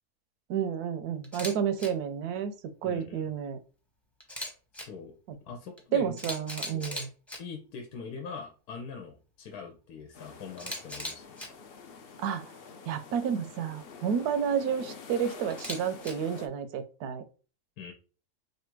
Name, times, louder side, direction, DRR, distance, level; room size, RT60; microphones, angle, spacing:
voice 1, 0.5-3.6 5.3-5.4 5.9-7.1 12.2-12.4 12.9-17.2, right 8 dB, 80° right, 10 dB, 1.1 m, -31 dB
Camera, 1.2-1.5 1.8-1.9 4.2-4.8 5.8-5.9 6.2-7.4 10.6-11.5 15.5-16.1, equal, ahead, 0.6 m, -37 dB
voice 2, 2.8-3.3 4.7-5.1 5.5-6.3 6.7-7.0 7.4-11.4 17.8-17.9, left 5 dB, 80° left, 4 dB, 1.2 m, -43 dB
sound 1, 10.1-16.5, left 5 dB, 60° left, 0.6 m, -47 dB
3.2 x 2.5 x 4.4 m, 0.36 s
omnidirectional pair, 1.6 m